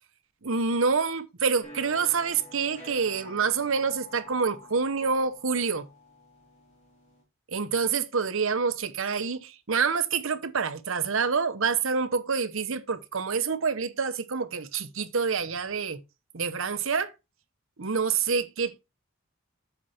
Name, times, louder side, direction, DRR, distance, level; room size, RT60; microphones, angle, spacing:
voice 1, 0.4-5.9 7.5-16.0 16.3-17.1 17.8-18.8, right 5 dB, 70° right, 0.9 m, -27 dB
sound 1, 1.6-7.2, left 2 dB, 30° left, 3.3 m, -49 dB
8.2 x 5.6 x 4.2 m
head